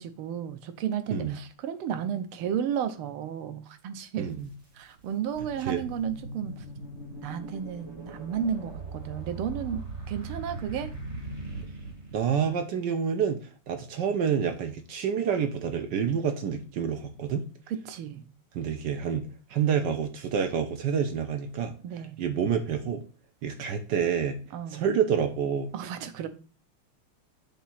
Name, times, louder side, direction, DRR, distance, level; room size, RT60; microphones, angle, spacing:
voice 1, 0.0-4.3 4.8-6.6 7.2-10.9 17.7-18.3 21.8-22.2 24.5-24.9 25.7-26.3, right 8 dB, 90° right, 1.6 m, -33 dB
voice 2, 4.2-4.5 5.7-5.8 12.1-17.4 18.5-21.7 22.2-23.0 23.4-24.4 24.7-25.7, right 7 dB, 70° right, 1.1 m, -28 dB
sound 1, 4.3-4.4 5.0-12.6, right 2 dB, 40° right, 1.4 m, -40 dB
7.2 x 2.8 x 5.6 m
omnidirectional pair, 2.3 m